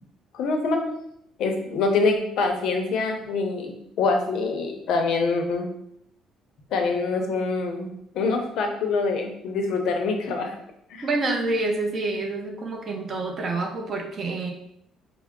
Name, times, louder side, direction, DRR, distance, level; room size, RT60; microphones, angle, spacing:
voice 1, 0.3-0.9 1.4-5.7 6.7-7.9 8.1-10.6 10.9-11.1, left 3 dB, 65° left, 4 dB, 0.6 m, -25 dB
voice 2, 11.0-14.5, right 2 dB, 35° right, 3 dB, 0.6 m, -27 dB
4.6 x 2.0 x 3.6 m, 0.74 s
cardioid pair, 155°, 0 cm